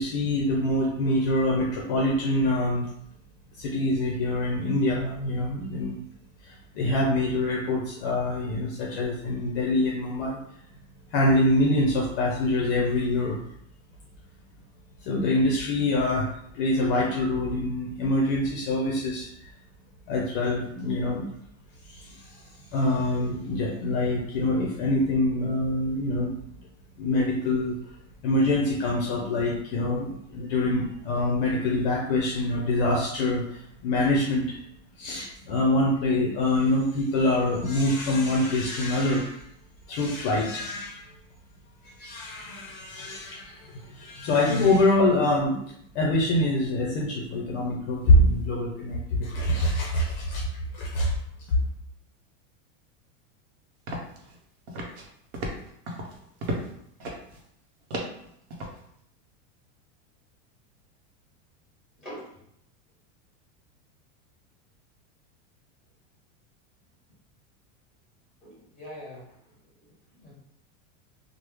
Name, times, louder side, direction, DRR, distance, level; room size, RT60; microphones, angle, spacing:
voice 1, 0.0-2.9 3.5-6.0 6.4-10.4 11.1-13.4 15.0-19.5 20.1-21.2 21.8-22.4 22.7-26.3 27.0-27.8 28.2-34.6 35.0-39.4 39.9-41.1 41.8-45.6 45.9-50.5 50.7-51.1 51.5-51.6, left 1 dB, 45° left, -2 dB, 0.5 m, -25 dB
sound 1, 53.9-54.4 54.7-55.1 55.3-56.7 57.0-57.4 57.9-58.8, right 1 dB, 60° right, 0.8 m, -34 dB
voice 2, 62.0-62.4 68.4-69.4 70.2-70.3, equal, ahead, -7 dB, 1.4 m, -43 dB
3.1 x 2.0 x 3.3 m, 0.71 s
supercardioid pair, 170°, 38 cm